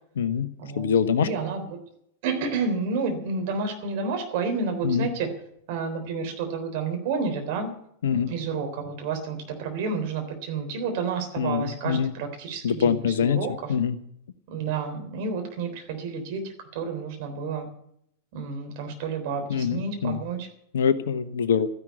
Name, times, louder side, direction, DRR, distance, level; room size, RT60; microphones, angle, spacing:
voice 1, 0.2-0.5 0.8-1.3 4.8-5.1 8.0-8.3 11.4-12.1 12.6-13.4 13.7-14.0 19.5-20.2 20.7-21.7, left 7 dB, 65° left, 13 dB, 1.0 m, -24 dB
voice 2, 1.1-1.8 2.2-5.3 5.7-7.7 8.1-13.7 14.5-17.7 18.3-20.5, right 4 dB, 50° right, 4 dB, 3.6 m, -30 dB
13.0 x 11.0 x 8.2 m, 0.72 s
figure-of-eight pair, 90°, 0 cm